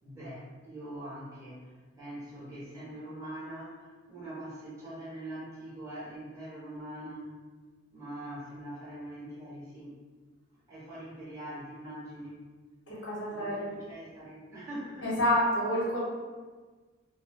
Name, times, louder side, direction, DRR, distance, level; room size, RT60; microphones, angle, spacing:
voice 1, 0.0-7.4 7.9-9.9 10.7-12.4 12.9-15.2, right 1 dB, 15° right, -12 dB, 1.3 m, -43 dB
voice 2, 12.9-13.7 15.0-16.0, equal, 75° left, -5 dB, 1.0 m, -28 dB
2.7 x 2.1 x 3.3 m, 1.4 s
head